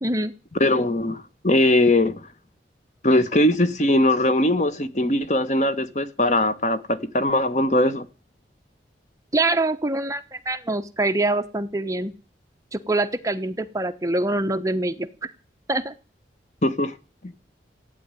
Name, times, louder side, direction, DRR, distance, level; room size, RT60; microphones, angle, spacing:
voice 1, 0.0-0.3 9.3-12.1 12.7-15.1 15.7-15.9, right 2 dB, 20° right, 1.0 m, -24 dB
voice 2, 0.6-2.3 3.0-8.0 16.6-16.9, left 1 dB, 40° left, 1.3 m, -20 dB
15.0 x 9.7 x 9.1 m
head